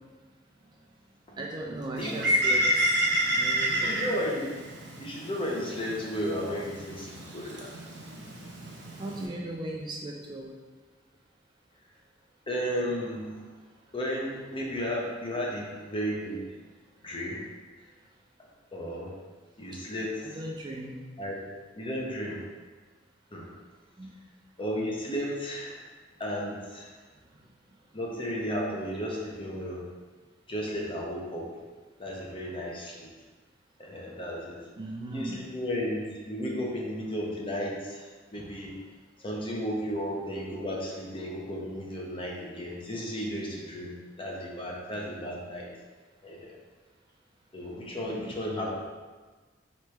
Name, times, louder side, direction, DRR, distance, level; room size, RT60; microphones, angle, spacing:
voice 1, 1.4-3.9 9.0-10.5 20.3-21.0 24.0-24.1 27.3-27.4 34.8-35.4 48.0-48.3, right 1 dB, 25° right, -1 dB, 0.3 m, -37 dB
Bird, 2.0-9.3, right 1 dB, 65° right, 0.9 m, -30 dB
voice 2, 3.7-4.5 5.0-7.7 12.5-13.4 13.9-16.4 17.0-17.4 18.7-19.1 19.6-20.4 21.2-21.4 21.7-22.4 23.3-23.5 24.6-25.9 26.2-26.9 27.9-29.9 30.5-31.5 32.0-33.1 33.8-34.6 35.1-38.7 39.2-45.7 46.2-46.6 47.5-48.8, equal, 30° left, -2 dB, 0.7 m, -34 dB
3.2 x 3.1 x 4.5 m, 1.3 s
head